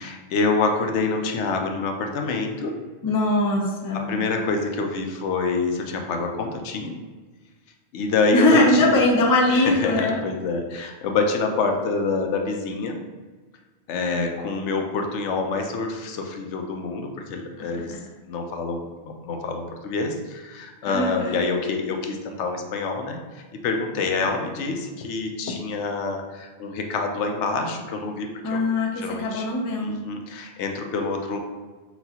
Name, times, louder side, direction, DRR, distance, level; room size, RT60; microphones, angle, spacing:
voice 1, 0.0-2.7 3.9-7.0 7.9-9.0 9.5-13.0 13.9-17.9 18.3-28.7 29.0-29.4 29.8-31.4, left 4 dB, 80° left, 4 dB, 0.9 m, -27 dB
voice 2, 3.0-4.2 8.3-10.2 17.6-17.7 20.9-21.4 28.4-30.1, left 2 dB, 30° left, -1 dB, 0.4 m, -21 dB
5.8 x 2.3 x 2.8 m, 1.3 s
omnidirectional pair, 1.2 m